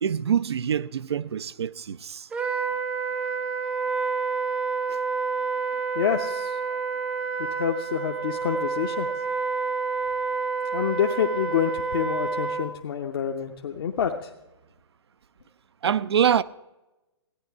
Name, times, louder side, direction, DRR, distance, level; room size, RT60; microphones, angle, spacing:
voice 1, 0.0-2.3 4.9-5.0 15.8-16.4, right 8 dB, 70° right, 0.5 m, -25 dB
Wind instrument woodwind instrument, 2.3-12.7, right 5 dB, 10° right, 0.4 m, -29 dB
voice 2, 5.9-6.6 7.5-9.1 10.7-14.3, left 8 dB, 55° left, 0.8 m, -27 dB
15.0 x 9.7 x 4.6 m
figure-of-eight pair, 125°, 14 cm